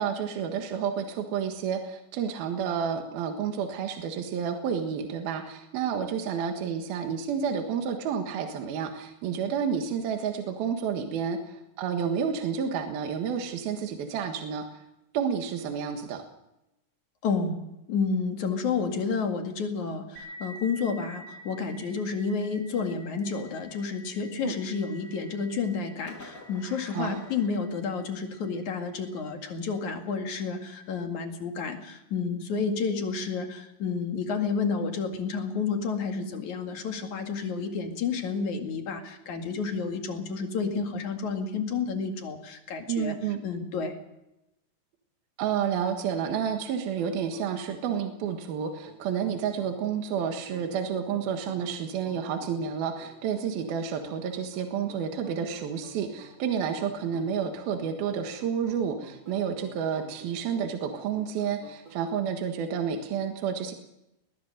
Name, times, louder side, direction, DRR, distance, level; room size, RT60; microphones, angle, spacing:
voice 1, 0.0-14.8 15.1-16.2 24.4-24.5 26.9-27.2 42.9-43.4 45.4-63.7, right 7 dB, 75° right, 5 dB, 3.4 m, -30 dB
voice 2, 17.2-17.6 17.9-43.2 43.4-44.0, left 5 dB, 55° left, 4 dB, 3.3 m, -30 dB
sound 1, 20.2-29.4, equal, 25° right, 5.8 m, -49 dB
Fireworks, 24.5-25.5 26.1-28.3, left 2 dB, 25° left, 3.5 m, -50 dB
sound 2, 47.0-62.1, right 3 dB, 45° right, 4.8 m, -51 dB
21.0 x 20.0 x 6.6 m, 0.90 s
omnidirectional pair, 4.4 m